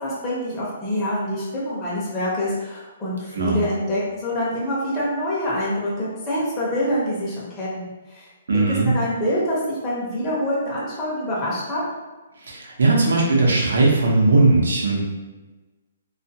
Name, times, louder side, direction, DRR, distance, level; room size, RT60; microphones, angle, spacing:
voice 1, 0.0-8.2 8.7-11.8, equal, 15° left, -8 dB, 0.7 m, -26 dB
voice 2, 8.5-8.9 12.4-15.0, right 3 dB, 80° right, -2 dB, 0.8 m, -18 dB
2.5 x 2.4 x 2.7 m, 1.2 s
hypercardioid pair, 155°, 0 cm